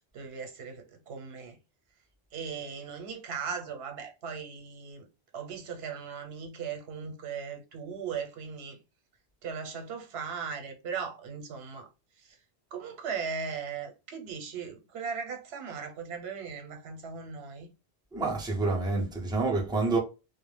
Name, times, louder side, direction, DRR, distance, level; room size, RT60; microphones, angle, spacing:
voice 1, 0.1-1.5 2.3-5.1 5.3-8.8 9.4-11.9 12.7-17.7, right 6 dB, 70° right, 0.9 m, -38 dB
voice 2, 18.1-20.0, right 3 dB, 5° right, 0.4 m, -28 dB
2.2 x 2.0 x 3.1 m
omnidirectional pair, 1.1 m